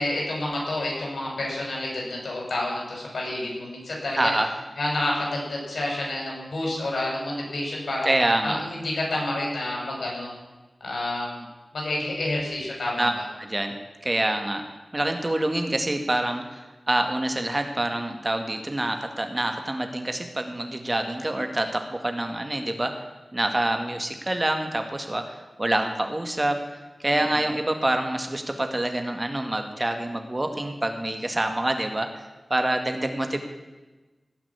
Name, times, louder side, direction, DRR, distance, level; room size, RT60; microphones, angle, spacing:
voice 1, 0.0-4.3 4.8-8.1 8.4-10.3 10.8-11.4 11.7-13.2 27.0-27.3, left 1 dB, 85° left, -2 dB, 6.3 m, -29 dB
voice 2, 4.2-4.5 8.0-8.6 13.0-13.1 13.4-13.7 14.0-14.6 14.9-22.9 23.3-26.6 27.0-33.4, right 1 dB, 30° right, 5 dB, 2.0 m, -26 dB
17.5 x 6.0 x 9.8 m, 1.2 s
cardioid pair, 50°, 0 cm